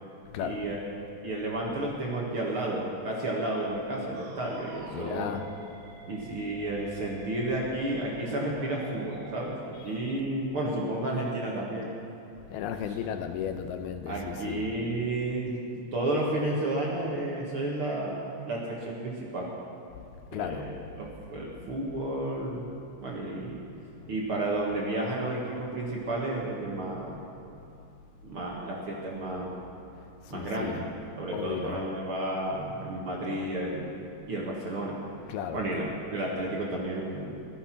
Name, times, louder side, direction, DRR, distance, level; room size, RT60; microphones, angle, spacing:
voice 1, 0.4-0.8 1.2-5.4 6.1-9.5 9.8-11.9 12.9-13.0 14.1-19.5 20.3-22.7 23.0-23.6 24.1-27.2 28.2-29.6 30.3-33.9 34.3-35.0 35.5-37.4, right 1 dB, 50° right, -3 dB, 1.8 m, -32 dB
sound 1, 4.1-9.4, right 2 dB, 75° right, 3.8 m, -47 dB
voice 2, 4.9-5.4 12.5-14.6 20.3-20.7 24.0-24.1 30.3-30.8 31.3-31.8 35.3-35.6, left 8 dB, 80° left, 7 dB, 2.6 m, -34 dB
16.5 x 13.0 x 5.9 m, 2.7 s
omnidirectional pair, 4.5 m